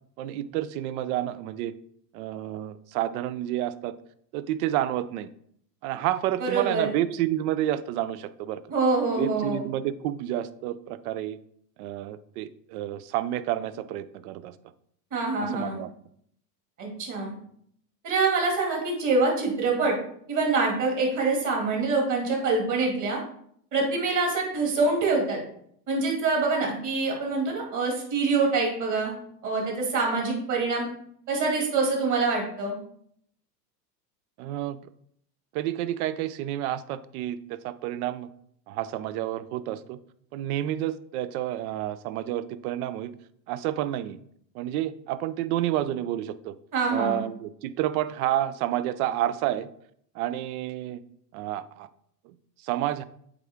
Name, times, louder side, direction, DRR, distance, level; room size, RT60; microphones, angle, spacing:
voice 1, 0.2-1.8 2.1-3.9 4.3-5.3 5.8-8.6 9.2-11.4 11.8-14.5 15.4-15.9 34.4-34.8 35.5-38.3 38.7-40.0 40.3-43.1 43.5-44.2 44.5-46.5 46.9-49.7 50.1-51.0 51.3-51.9 52.3-52.4 52.6-53.0, right 13 dB, 60° right, 15 dB, 0.6 m, -29 dB
voice 2, 6.4-6.9 8.7-9.6 15.1-15.8 16.8-17.3 18.0-20.0 20.3-23.2 23.7-25.4 25.9-29.1 29.4-30.9 31.3-32.8 46.7-47.3, right 3 dB, 35° right, 0 dB, 2.2 m, -25 dB
8.3 x 3.6 x 3.5 m, 0.67 s
supercardioid pair, 125°, 50 cm